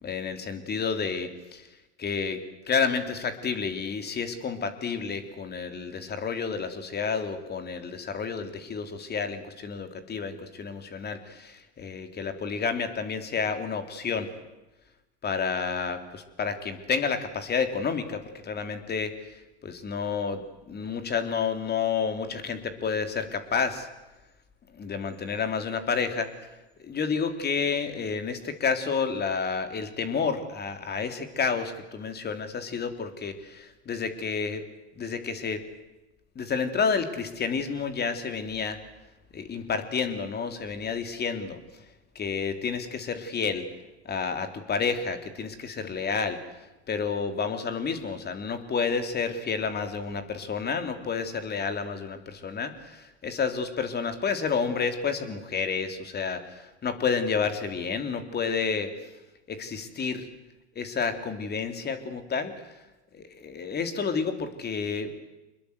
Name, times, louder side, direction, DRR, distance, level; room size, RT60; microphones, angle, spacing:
voice 1, 0.0-1.7 2.0-14.3 15.2-23.9 24.7-26.3 26.8-34.6 35.0-35.6 36.3-38.8 39.3-41.6 42.1-43.7 44.0-46.4 46.9-58.9 59.5-60.3 60.7-62.5 63.1-65.1, left 5 dB, 30° left, 8 dB, 3.2 m, -30 dB
26.0 x 21.0 x 8.1 m, 1.0 s
hypercardioid pair, 90°, 34 cm